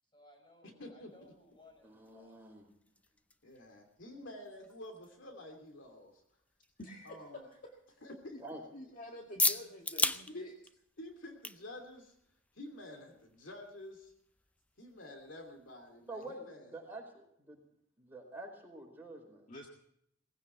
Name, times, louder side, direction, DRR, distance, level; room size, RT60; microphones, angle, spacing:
voice 1, 0.0-2.5 2.8-2.9, left 2 dB, 25° left, 1 dB, 7.7 m, -62 dB
voice 2, 0.6-1.1 3.4-6.2 7.0-7.5 8.0-8.3 10.3-10.5 11.0-12.1 12.5-14.1 14.8-16.6, left 1 dB, 70° left, 4 dB, 2.9 m, -49 dB
sound 1, 1.1-16.4, left 2 dB, 5° left, 0.6 m, -42 dB
voice 3, 1.8-2.7 8.4-8.6 16.1-17.6 18.0-19.5, right 2 dB, 10° right, 0 dB, 5.0 m, -47 dB
voice 4, 6.8-7.7 8.3-8.4 8.7-10.5 19.5-19.7, left 1 dB, 45° left, 1 dB, 1.8 m, -48 dB
19.5 x 16.0 x 4.5 m, 0.71 s
head